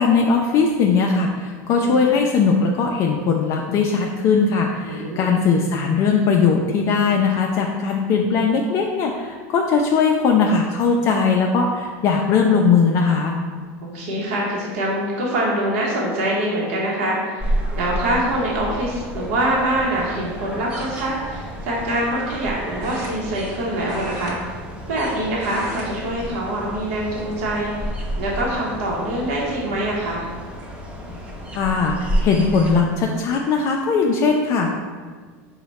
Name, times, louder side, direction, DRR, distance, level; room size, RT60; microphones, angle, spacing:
voice 1, 0.0-13.4 31.5-34.7, left 5 dB, 45° left, 0 dB, 0.4 m, -19 dB
voice 2, 1.7-2.0 4.9-5.4 13.8-24.5 24.9-30.2, right 1 dB, 75° right, -4 dB, 0.8 m, -24 dB
sound 1, 17.4-32.8, equal, 15° right, 0.5 m, -31 dB
sound 2, 20.9-21.1 22.8-23.6 23.8-25.1 25.3-25.9 26.2-26.5 27.2-27.8 28.3-28.4 29.9-30.0 30.3-30.7, right 1 dB, 45° right, 0.9 m, -38 dB
4.6 x 2.1 x 4.0 m, 1.6 s
supercardioid pair, 135°, 7 cm